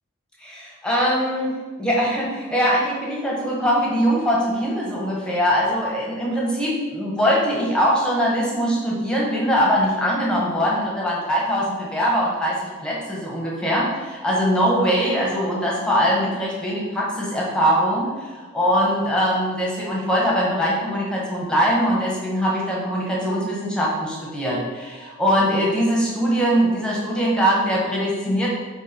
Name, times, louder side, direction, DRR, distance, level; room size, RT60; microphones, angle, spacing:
voice 1, 0.4-28.5, equal, 5° left, -4 dB, 1.4 m, -22 dB
7.6 x 3.3 x 5.3 m, 1.4 s
head